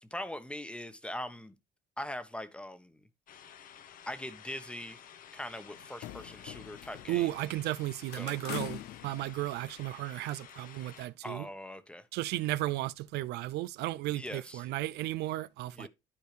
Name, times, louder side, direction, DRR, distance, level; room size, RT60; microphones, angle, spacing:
voice 1, 0.0-1.6 2.0-3.1 4.1-5.0 5.3-7.3 8.2-8.4 11.2-12.1 14.1-14.6 15.7-15.9, left 1 dB, 5° left, 1.1 m, -41 dB
sound 1, 3.3-11.1, left 8 dB, 55° left, 1.0 m, -53 dB
sound 2, 5.7-7.7 8.1-10.0, left 14 dB, 85° left, 0.5 m, -44 dB
voice 2, 7.1-11.5 12.1-15.9, right 16 dB, 80° right, 0.4 m, -34 dB
12.0 x 4.7 x 3.2 m
cardioid pair, 110°, 17 cm